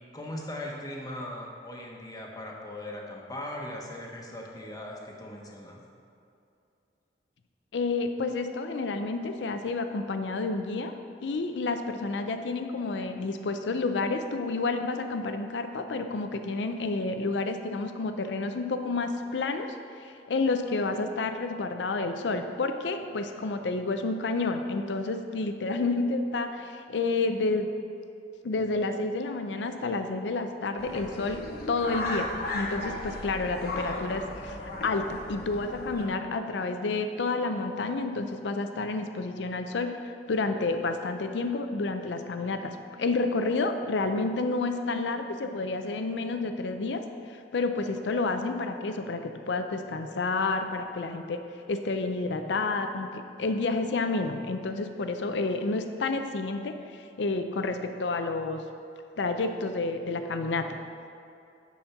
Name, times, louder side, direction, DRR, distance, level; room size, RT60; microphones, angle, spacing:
voice 1, 0.1-5.8, left 1 dB, 20° left, -1 dB, 1.1 m, -39 dB
voice 2, 7.7-10.9 11.2-27.7 28.4-34.6 34.8-47.0 47.3-51.4 51.7-58.6 59.2-60.8, left 3 dB, 80° left, 7 dB, 0.5 m, -30 dB
sound 1, 30.8-36.1, left 2 dB, 60° left, 1.1 m, -36 dB
9.8 x 4.3 x 5.8 m, 2.6 s
head